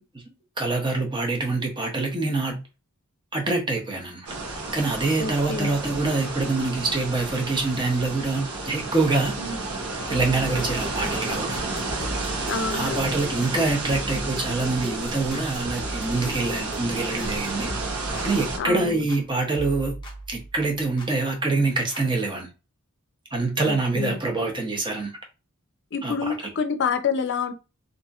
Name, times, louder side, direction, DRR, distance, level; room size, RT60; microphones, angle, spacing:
voice 1, 0.6-2.6 3.3-4.3 4.7-9.4 10.1-11.7 12.7-17.7 18.2-19.9 20.3-22.5 23.3-25.1 26.0-26.1, right 3 dB, 20° right, 0.8 m, -25 dB
sound 1, 4.3-18.6, right 2 dB, 80° right, 0.9 m, -31 dB
voice 2, 5.2-5.7 9.4-9.6 12.5-13.0 18.6-19.0 23.6-24.2 25.9-27.5, left 5 dB, 55° left, 0.5 m, -28 dB
sound 2, 10.1-19.3 19.6-21.1 21.9-22.0, right 1 dB, 20° left, 0.7 m, -38 dB
2.8 x 2.5 x 2.4 m
head